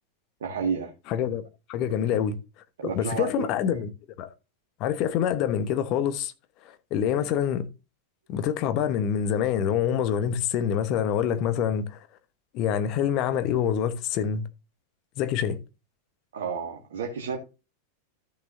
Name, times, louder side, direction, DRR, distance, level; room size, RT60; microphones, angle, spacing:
voice 1, 0.4-0.9 2.0-2.2 2.8-3.8 16.3-17.4, right 6 dB, 60° right, 1.9 m, -31 dB
voice 2, 1.1-1.4 1.7-2.4 2.9-3.9 4.2-4.3 4.8-6.3 6.9-7.7 8.3-12.0 12.5-14.4 15.2-15.6, left 9 dB, 40° left, 1.2 m, -26 dB
13.5 x 6.4 x 2.7 m
figure-of-eight pair, 90°, 0 cm